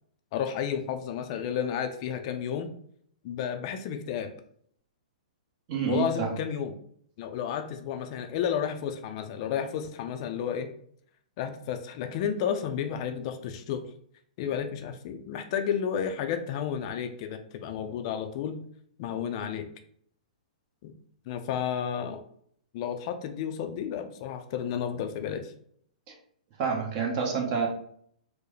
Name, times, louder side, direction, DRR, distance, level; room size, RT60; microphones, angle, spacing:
voice 1, 0.3-2.7 3.2-4.3 5.9-6.7 7.2-10.7 11.4-13.8 14.4-18.6 19.0-19.7 20.8-20.9 21.3-22.2 22.7-25.5, left 8 dB, 45° left, 7 dB, 0.4 m, -32 dB
voice 2, 5.7-6.3 26.6-27.7, right 6 dB, 40° right, 1 dB, 1.0 m, -28 dB
4.5 x 2.1 x 3.2 m, 0.63 s
hypercardioid pair, 125°, 4 cm